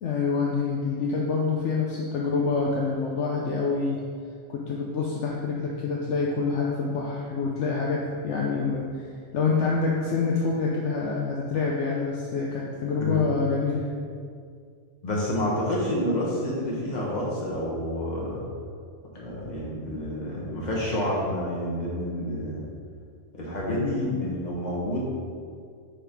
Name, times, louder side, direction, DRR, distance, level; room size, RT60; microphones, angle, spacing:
voice 1, 0.0-4.0 4.5-9.0 9.3-13.9 23.7-24.0, left 4 dB, 70° left, -3 dB, 1.0 m, -26 dB
voice 2, 13.0-13.4 15.0-18.4 19.2-22.6 23.4-25.0, left 1 dB, 35° left, -5 dB, 1.5 m, -29 dB
5.1 x 4.5 x 5.1 m, 2.2 s
omnidirectional pair, 1.3 m